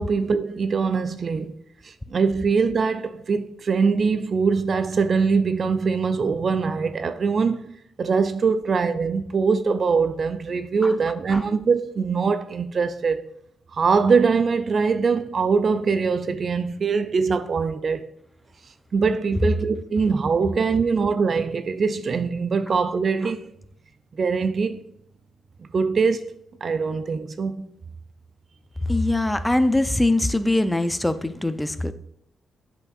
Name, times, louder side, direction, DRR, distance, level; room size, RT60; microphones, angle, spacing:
voice 1, 0.0-1.6 1.8-7.7 8.0-13.2 13.7-18.1 18.9-23.5 24.1-24.8 25.6-27.7, right 5 dB, 50° right, 0.4 m, -23 dB
voice 2, 28.8-31.9, left 2 dB, 10° left, 0.5 m, -22 dB
8.2 x 5.0 x 2.4 m
hypercardioid pair, 40°, 0 cm